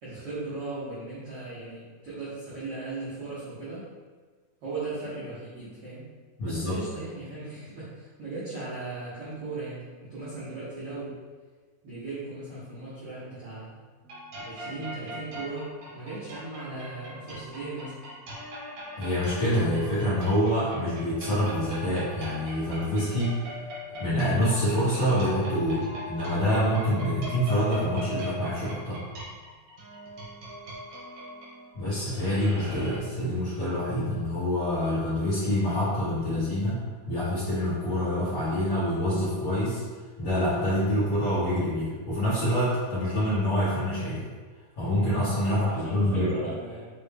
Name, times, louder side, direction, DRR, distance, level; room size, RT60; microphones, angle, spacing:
voice 1, 0.0-3.8 4.6-6.1 6.4-11.2 11.8-13.8 14.4-18.0 45.4-46.9, right 3 dB, 85° right, -11 dB, 1.2 m, -37 dB
voice 2, 6.4-6.8 18.9-23.4 24.0-29.0 31.7-36.8 37.0-39.8 40.2-44.2 44.7-46.3, equal, 80° left, -14 dB, 1.0 m, -26 dB
sound 1, 14.0-33.0, equal, 70° right, 1.6 m, -40 dB
6.6 x 2.3 x 3.4 m, 1.4 s
omnidirectional pair, 4.3 m